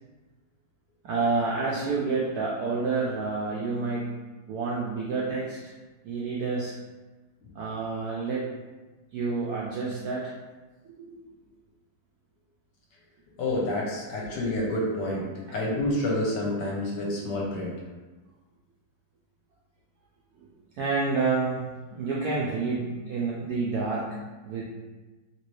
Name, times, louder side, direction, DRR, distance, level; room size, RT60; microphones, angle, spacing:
voice 1, 1.0-4.1 4.5-5.7 6.0-6.7 7.5-8.5 9.1-10.3 10.9-11.2 14.2-14.3 20.8-24.2 24.4-24.6, right 4 dB, 80° right, -4 dB, 0.8 m, -29 dB
voice 2, 13.4-15.3 15.5-17.8, left 1 dB, 70° left, -2 dB, 1.2 m, -28 dB
3.0 x 3.0 x 3.1 m, 1.2 s
omnidirectional pair, 2.1 m